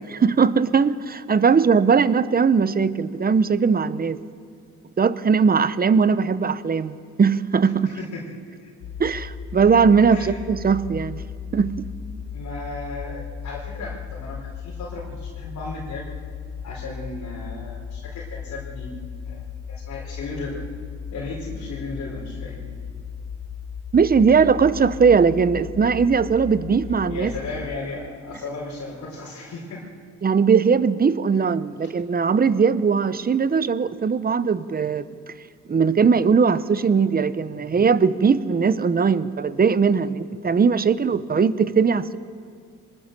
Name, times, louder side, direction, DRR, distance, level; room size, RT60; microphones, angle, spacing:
voice 1, 0.2-4.2 5.0-7.9 9.0-11.2 11.5-11.8 23.9-27.3 30.2-35.1 35.7-42.2, right 5 dB, 30° right, 0.9 m, -19 dB
voice 2, 7.8-8.3 8.6-8.7 10.1-10.4 12.3-16.0 16.6-19.0 19.2-19.4 19.7-20.6 21.1-22.8 27.1-29.9 31.3-31.4, left 2 dB, 70° left, 4.4 m, -35 dB
sound 1, 8.8-27.8, left 7 dB, 90° left, 2.2 m, -36 dB
24.0 x 19.5 x 6.8 m
cardioid pair, 90°, 30 cm